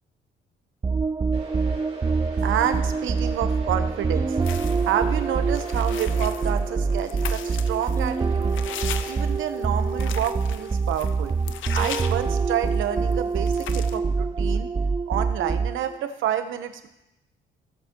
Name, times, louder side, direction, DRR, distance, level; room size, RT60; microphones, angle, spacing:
sound 1, 0.8-16.0, right 4 dB, 20° right, 0.3 m, -25 dB
sound 2, 1.3-11.4, right 2 dB, 35° right, 3.8 m, -42 dB
voice 1, 2.4-8.5 9.0-11.3 11.7-14.7 15.1-16.9, right 10 dB, 80° right, 9 dB, 1.0 m, -29 dB
sound 3, 4.4-5.0 5.5-12.9 13.1-13.2 13.4-14.0, left 10 dB, 75° left, 0.6 m, -38 dB
17.5 x 7.3 x 3.0 m, 0.90 s
cardioid pair, 90°, 20 cm